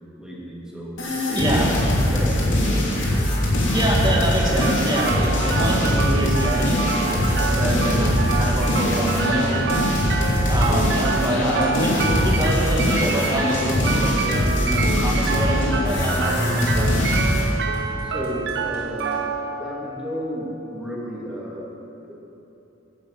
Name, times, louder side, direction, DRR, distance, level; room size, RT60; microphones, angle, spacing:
voice 1, 0.2-1.0 1.3-1.8 2.1-2.9 18.0-19.2 19.6-21.7 22.0-22.2, equal, 5° right, -5 dB, 2.4 m, -33 dB
sound 1, 1.0-17.5, left 1 dB, 80° left, 2.8 m, -22 dB
voice 2, 1.3-1.7 3.7-9.7 10.5-17.0, right 1 dB, 25° right, -3 dB, 2.4 m, -26 dB
Percussion, 3.2-19.2, equal, 30° left, 2.8 m, -41 dB
sound 2, 4.6-20.6, right 5 dB, 65° right, 0.8 m, -28 dB
11.0 x 8.7 x 8.4 m, 3.0 s
head